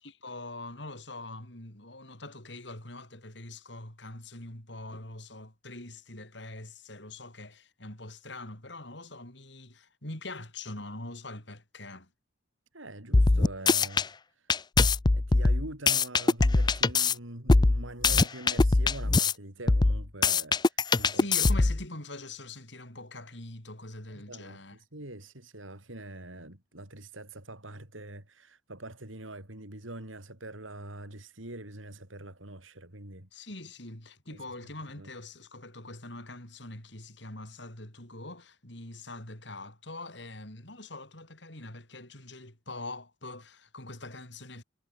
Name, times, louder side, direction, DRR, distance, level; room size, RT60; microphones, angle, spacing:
voice 1, 0.0-12.1 21.1-24.8 33.3-44.6, left 2 dB, 60° left, 5.7 m, -43 dB
voice 2, 12.7-14.1 15.0-21.3 24.1-24.6 24.9-33.3 34.3-34.4 35.0-35.1, right 1 dB, 85° right, 5.9 m, -44 dB
sound 1, 13.1-14.1 14.5-17.1 17.5-19.3 19.7-21.8, left 3 dB, 20° left, 0.4 m, -22 dB
head